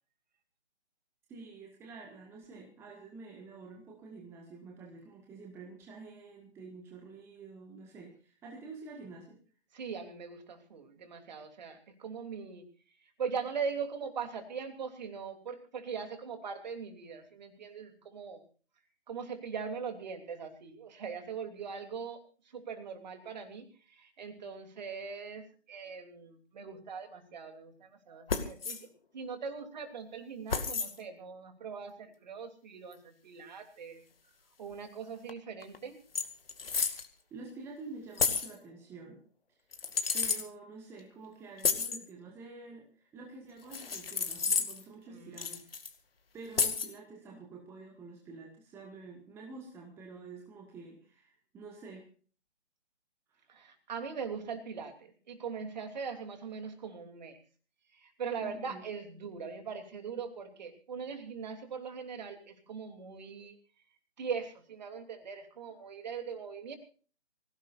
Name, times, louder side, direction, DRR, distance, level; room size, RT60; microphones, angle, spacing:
voice 1, 1.3-9.4 37.3-39.2 40.1-45.8 46.3-52.1 53.3-53.5 58.4-58.8, right 3 dB, 5° right, 0 dB, 1.6 m, -48 dB
voice 2, 9.7-12.6 13.0-18.4 19.1-28.9 29.1-34.0 34.6-36.0 45.1-45.6 53.5-57.4 57.9-63.6 64.2-66.8, right 6 dB, 40° right, 7 dB, 3.1 m, -41 dB
sound 1, 28.3-28.8 30.5-30.9 32.9-33.0 35.3-35.4 35.6-35.8 36.1-37.1 38.2-38.5 39.7-40.4 41.6-42.0 43.7-44.8 45.4-45.9 46.6-46.9, left 5 dB, 55° left, 2.2 m, -31 dB
25.0 x 17.0 x 2.6 m, 0.40 s
figure-of-eight pair, 145°, 35 cm